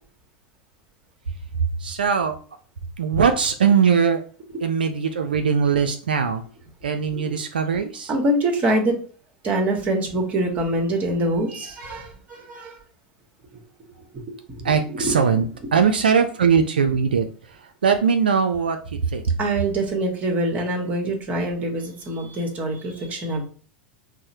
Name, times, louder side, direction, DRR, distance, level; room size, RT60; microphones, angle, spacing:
voice 1, 1.8-2.4 3.0-4.2 4.6-6.4 6.8-8.1 14.6-15.5 15.7-18.8 19.1-19.2, right 6 dB, 85° right, 6 dB, 0.4 m, -20 dB
voice 2, 8.1-9.0 9.4-12.8 13.5-13.6 14.1-15.2 19.4-23.4, right 1 dB, 35° right, 2 dB, 1.2 m, -25 dB
4.6 x 2.0 x 2.8 m, 0.41 s
hypercardioid pair, 90°, 5 cm